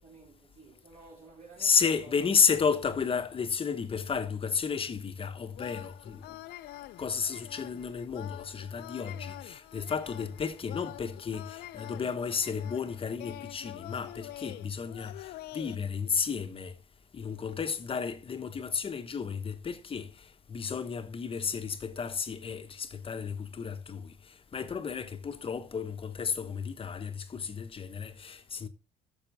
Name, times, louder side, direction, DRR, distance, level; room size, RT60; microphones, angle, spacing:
voice 1, 0.0-2.2, right 3 dB, 45° right, 2.8 m, -53 dB
voice 2, 1.6-6.2 7.0-16.8 17.1-28.7, left 6 dB, 35° left, 1.2 m, -32 dB
sound 1, 5.5-15.8, left 15 dB, 70° left, 0.4 m, -46 dB
12.5 x 6.7 x 3.5 m
cardioid pair, 110°, 17 cm